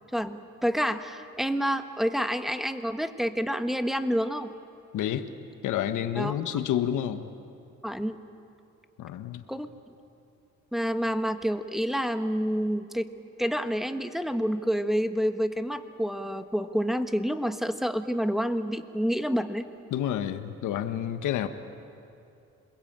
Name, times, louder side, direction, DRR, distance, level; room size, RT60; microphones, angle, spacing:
voice 1, 0.1-4.5 6.2-6.3 7.8-8.2 9.5-9.7 10.7-13.1 13.4-19.6, equal, ahead, 8 dB, 1.4 m, -28 dB
voice 2, 4.9-5.3 5.6-7.2 9.0-9.4 19.9-21.5, left 10 dB, 80° left, 8 dB, 1.4 m, -29 dB
26.5 x 21.0 x 8.9 m, 2.5 s
cardioid pair, 90°, 30 cm